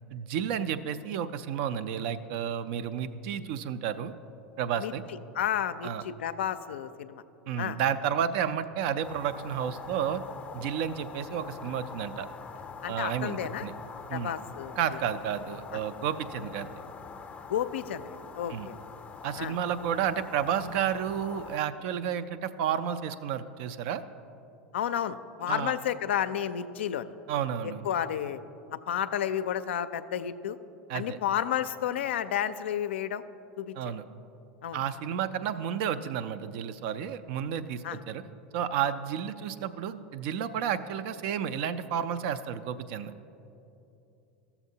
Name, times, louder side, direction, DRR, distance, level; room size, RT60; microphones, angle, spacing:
voice 1, 0.1-4.1 4.6-5.0 5.8-6.1 7.5-10.2 10.5-12.3 12.9-13.7 14.1-14.3 14.8-16.7 18.5-18.7 19.2-24.0 25.5-25.8 27.3-27.8 30.9-31.2 33.8-34.0 34.7-38.2 38.5-43.1, right 8 dB, 60° right, 12 dB, 0.4 m, -31 dB
voice 2, 5.3-7.2 7.6-7.8 12.8-13.7 14.1-14.8 15.7-15.8 17.5-18.8 19.4-19.5 24.7-27.1 27.8-28.4 28.9-30.6 30.9-33.2 33.6-33.9 34.6-34.8 37.8-38.0, left 10 dB, 80° left, 11 dB, 0.4 m, -31 dB
sound 1, 9.0-21.6, left 5 dB, 20° left, 0.5 m, -44 dB
14.0 x 6.9 x 2.7 m, 2.8 s
hypercardioid pair, 95°, 6 cm